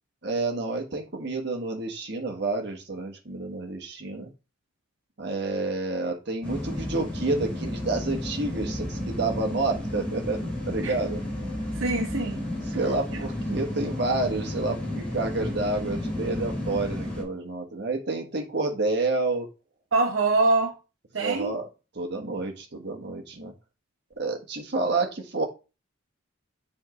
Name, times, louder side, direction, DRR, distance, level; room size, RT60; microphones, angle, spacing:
voice 1, 0.2-4.3 5.2-11.2 12.7-19.5 21.2-21.7 21.9-23.5 24.2-25.5, right 3 dB, 55° right, 1.4 m, -29 dB
sound 1, 6.4-17.2, left 1 dB, 5° left, 2.8 m, -32 dB
voice 2, 11.7-12.4 19.9-20.7 21.1-21.6, right 3 dB, 75° right, 0.9 m, -24 dB
7.3 x 4.4 x 3.1 m
head